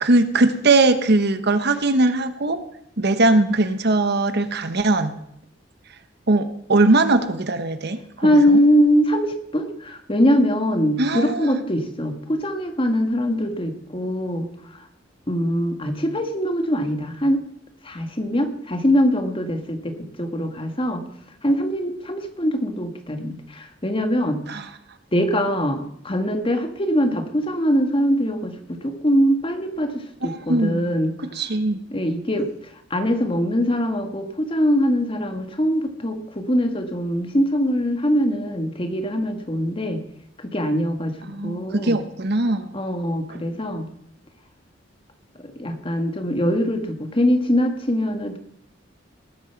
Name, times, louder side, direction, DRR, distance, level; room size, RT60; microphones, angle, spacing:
voice 1, 0.0-2.6 3.0-5.2 6.3-8.6 11.0-11.6 24.5-24.7 30.3-30.9 31.3-31.8 41.3-42.7 43.3-43.4, right 2 dB, 60° right, 10 dB, 1.2 m, -20 dB
voice 2, 8.2-14.5 15.3-17.4 17.8-21.1 21.4-24.4 25.1-31.2 31.9-32.5 32.9-40.0 40.4-41.1 41.4-42.0 42.7-43.9 45.4-48.4, equal, 30° left, 6 dB, 1.7 m, -22 dB
19.5 x 9.2 x 5.9 m, 0.74 s
head